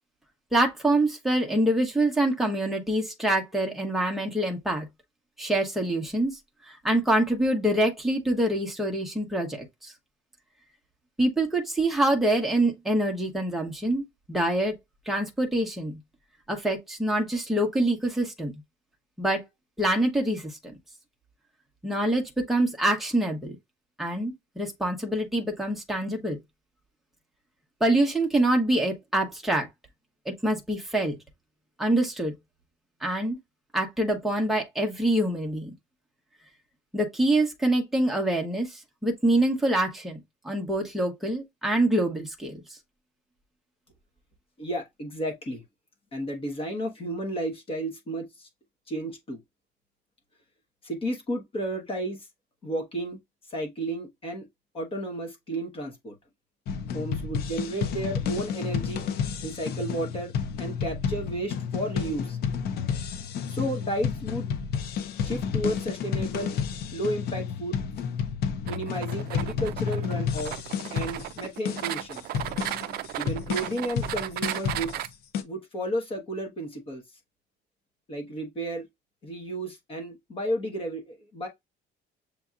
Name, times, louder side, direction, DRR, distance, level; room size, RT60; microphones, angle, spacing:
voice 1, 0.5-4.9 5.4-6.4 6.7-9.9 11.2-14.7 15.1-16.0 16.5-18.5 19.2-19.4 19.8-20.5 21.8-23.6 24.0-26.4 27.8-29.7 30.3-31.2 31.8-32.3 33.0-33.4 33.7-35.7 36.9-40.2 40.4-42.6, right 1 dB, ahead, 0.9 m, -25 dB
voice 2, 44.6-45.6 46.1-48.5 48.9-49.4 50.8-52.3 52.6-53.2 53.5-54.5 54.7-56.1 56.9-59.0 59.4-60.3 60.6-62.4 63.5-64.5 65.2-66.6 66.9-67.8 68.7-70.5 70.9-72.2 73.2-75.1 75.4-77.0 78.1-78.9 79.2-81.5, right 1 dB, 30° left, 1.1 m, -32 dB
sound 1, 56.7-75.4, left 7 dB, 55° left, 0.6 m, -31 dB
sound 2, 68.7-75.1, right 13 dB, 50° right, 0.4 m, -35 dB
6.9 x 2.7 x 2.4 m
cardioid pair, 175°, 20 cm